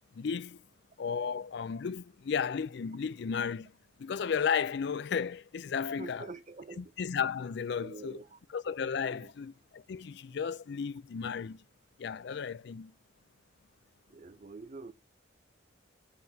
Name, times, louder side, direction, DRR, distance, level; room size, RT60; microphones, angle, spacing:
voice 1, 0.1-0.6 1.0-3.7 4.0-6.3 6.8-8.2 8.5-11.6 12.0-12.9, left 6 dB, 60° left, 0.4 m, -34 dB
voice 2, 6.0-6.9 7.7-8.4 9.0-9.3 14.1-14.9, right 3 dB, 35° right, 0.6 m, -46 dB
7.7 x 7.4 x 2.7 m
head